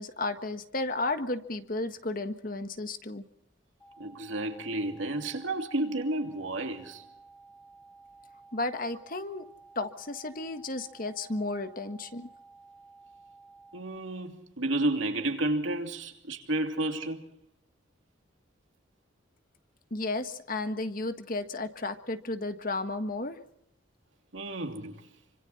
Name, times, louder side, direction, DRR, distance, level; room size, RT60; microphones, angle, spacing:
voice 1, 0.0-3.2 8.5-9.5 9.7-12.3 19.9-23.4, left 2 dB, 45° left, 1.6 m, -33 dB
sound 1, 3.8-13.8, right 3 dB, 10° left, 2.9 m, -54 dB
voice 2, 4.0-7.1 13.7-17.2 24.3-25.1, right 2 dB, 75° right, 2.9 m, -31 dB
27.5 x 25.5 x 4.3 m
head